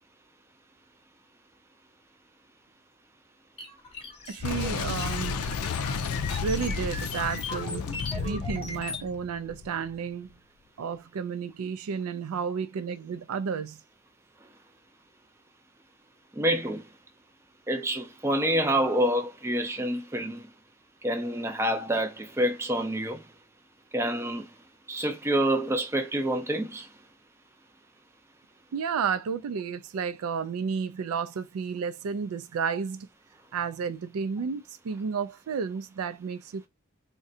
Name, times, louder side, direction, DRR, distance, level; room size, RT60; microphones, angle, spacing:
sound 1, 3.6-9.1, left 3 dB, 25° left, 0.7 m, -39 dB
voice 1, 4.3-5.5 6.4-7.8 8.1-10.4 10.8-13.8 28.7-33.1 33.5-36.7, right 6 dB, 75° right, 0.4 m, -32 dB
Boom, 4.4-10.0, left 5 dB, 85° left, 0.4 m, -32 dB
voice 2, 16.3-16.8 17.7-20.5 21.0-23.2 23.9-24.5 24.9-26.9, right 1 dB, 10° right, 0.4 m, -27 dB
3.6 x 2.2 x 2.7 m
head